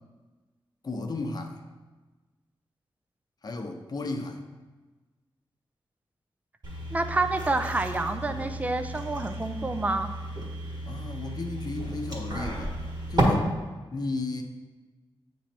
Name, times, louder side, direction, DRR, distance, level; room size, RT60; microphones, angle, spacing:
voice 1, 0.8-1.6 3.4-4.4 10.9-12.8 13.1-13.5 13.9-14.4, left 3 dB, 45° left, 4 dB, 0.7 m, -34 dB
sound 1, 6.6-13.2, right 1 dB, 50° right, 1.7 m, -34 dB
voice 2, 6.9-10.1, right 2 dB, 15° right, 7 dB, 0.4 m, -28 dB
8.7 x 3.1 x 4.3 m, 1.3 s
wide cardioid pair, 80°, 9 cm